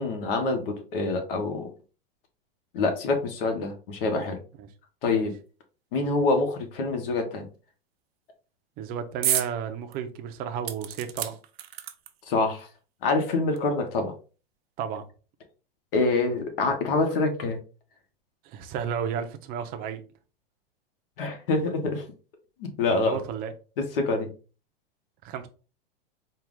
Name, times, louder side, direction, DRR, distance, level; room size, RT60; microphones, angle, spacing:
voice 1, 0.0-1.7 2.7-4.4 5.0-5.3 5.9-7.5 12.3-12.7 13.0-14.1 15.9-17.6 21.2-22.0 22.6-23.2 23.8-24.3, left 3 dB, 70° left, 1.3 m, -26 dB
voice 2, 8.8-11.3 14.8-15.0 18.4-20.0 22.9-23.5 25.2-25.5, right 8 dB, 30° right, 0.6 m, -33 dB
sound 1, 9.2-9.5 9.9-10.0 10.7-12.3 13.2-13.3 13.6-13.7, right 11 dB, 85° right, 0.7 m, -30 dB
4.5 x 2.4 x 3.7 m
supercardioid pair, 150°, 29 cm